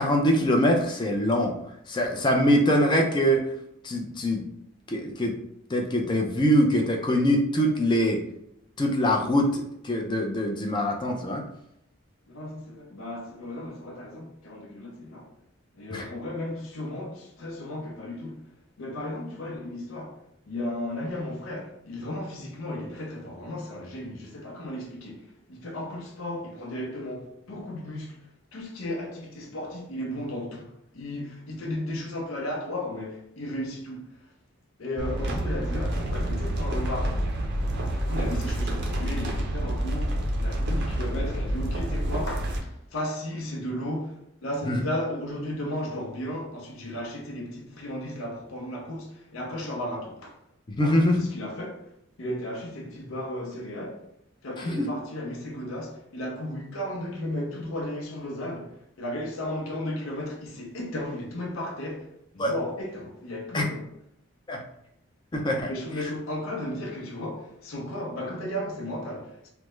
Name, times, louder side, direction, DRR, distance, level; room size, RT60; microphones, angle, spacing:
voice 1, 0.0-1.6 1.9-3.5 3.8-4.4 4.9-5.3 5.7-8.2 8.8-11.4 15.9-16.0 44.7-44.8 50.7-51.2 54.8-54.9 62.4-62.5 63.5-63.7 64.5-64.6 65.3-65.7, equal, 20° left, 0.4 m, -23 dB
voice 2, 12.3-15.3 15.7-18.5 18.8-20.2 20.5-34.3 34.8-37.3 37.9-50.4 50.8-51.9 52.2-54.0 54.4-63.9 65.7-69.5, left 1 dB, 75° left, 0.6 m, -35 dB
sound 1, 35.0-42.6, right 1 dB, 50° right, 0.5 m, -28 dB
3.3 x 2.0 x 3.1 m
head